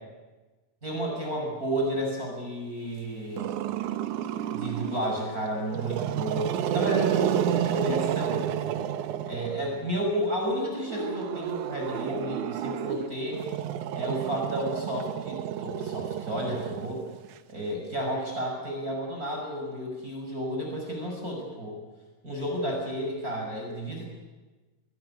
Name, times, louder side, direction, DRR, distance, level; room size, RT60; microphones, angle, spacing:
voice 1, 0.8-3.5 4.5-8.7 9.3-13.4 13.9-17.0 17.5-21.8 22.2-24.1, equal, 20° right, 0 dB, 6.2 m, -32 dB
Growling, 3.4-5.1 5.6-9.8 10.8-17.3, right 10 dB, 70° right, 2.0 m, -30 dB
22.5 x 19.5 x 9.7 m, 1.2 s
omnidirectional pair, 4.6 m